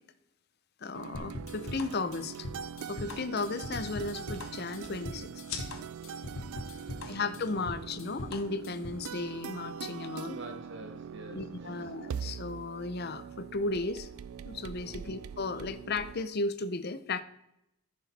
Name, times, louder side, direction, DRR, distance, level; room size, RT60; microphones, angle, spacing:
voice 1, 0.8-2.5 2.9-5.4 7.1-10.4 11.3-14.1 14.4-17.2, left 3 dB, 45° left, 12 dB, 0.6 m, -35 dB
sound 1, 0.9-16.2, right 7 dB, 80° right, 0.4 m, -43 dB
sound 2, 1.1-9.1, left 1 dB, 70° left, 1.1 m, -42 dB
sound 3, 1.9-8.6, left 6 dB, 90° left, 1.8 m, -50 dB
voice 2, 6.7-7.5 10.3-12.1 14.8-15.1, right 2 dB, 55° right, 5 dB, 1.7 m, -48 dB
14.0 x 6.3 x 4.2 m, 0.82 s
head